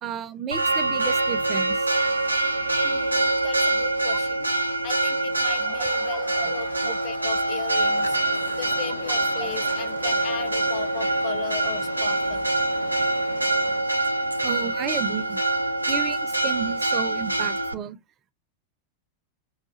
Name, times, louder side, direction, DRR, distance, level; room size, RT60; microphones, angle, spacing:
voice 1, 0.0-1.9 5.8-5.9 6.4-6.5 6.8-6.9 9.4-9.5 14.4-15.4 15.9-18.0, right 8 dB, 30° right, 0.5 m, -32 dB
Church bell, 0.5-17.7, right 2 dB, 85° right, 0.4 m, -25 dB
voice 2, 2.8-8.2 8.6-12.5, left 12 dB, 35° left, 0.4 m, -38 dB
Crowd, 5.4-12.0, left 6 dB, 60° left, 1.2 m, -45 dB
Traffic noise roadway noise, 7.8-13.8, left 2 dB, 75° left, 1.3 m, -42 dB
5.7 x 2.3 x 2.8 m
figure-of-eight pair, 90°, 0 cm